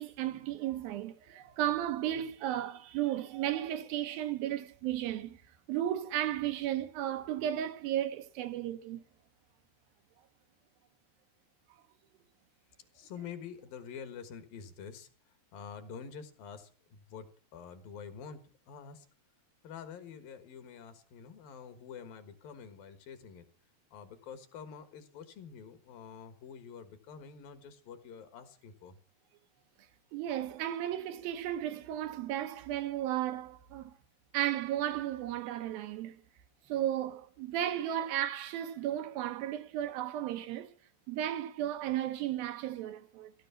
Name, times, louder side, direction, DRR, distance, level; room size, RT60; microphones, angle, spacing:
voice 1, 0.0-5.4 5.7-9.0 30.1-33.9 34.3-36.2 36.7-40.7 41.1-43.3, right 12 dB, 75° right, 2.6 m, -34 dB
voice 2, 12.9-15.1 15.5-19.1 19.6-23.4 23.9-29.0, left 7 dB, 65° left, 3.1 m, -47 dB
16.0 x 13.5 x 5.8 m
omnidirectional pair, 4.6 m